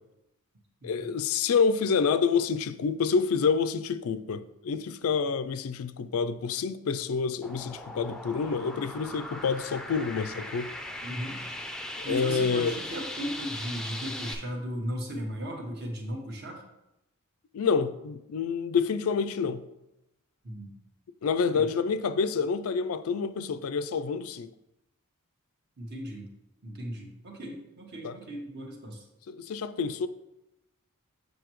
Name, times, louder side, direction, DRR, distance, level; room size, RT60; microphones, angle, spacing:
voice 1, 0.8-10.7 12.1-12.8 17.5-19.6 21.2-24.5 28.0-28.2 29.3-30.1, left 5 dB, 70° left, 0.4 m, -28 dB
sound 1, 7.4-14.3, left 1 dB, 5° left, 0.5 m, -39 dB
voice 2, 11.0-11.4 12.0-16.6 20.4-20.7 21.5-21.7 25.8-26.3 26.6-29.0, equal, 50° right, 1.3 m, -36 dB
6.9 x 6.5 x 3.1 m
head